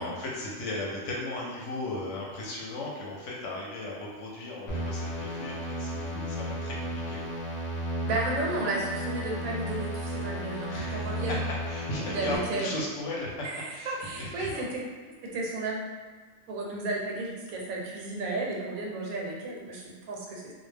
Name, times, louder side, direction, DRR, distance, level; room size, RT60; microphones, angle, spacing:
voice 1, 0.0-7.2 10.7-11.4 11.7-14.7, left 2 dB, 65° left, -3 dB, 0.9 m, -36 dB
sound 1, 4.7-12.4, equal, 50° left, 0.5 m, -34 dB
voice 2, 8.0-11.4 12.1-12.7 13.4-14.8 15.2-15.8 16.5-20.5, right 2 dB, 85° right, -2 dB, 1.0 m, -33 dB
2.3 x 2.1 x 3.2 m, 1.5 s
omnidirectional pair, 1.5 m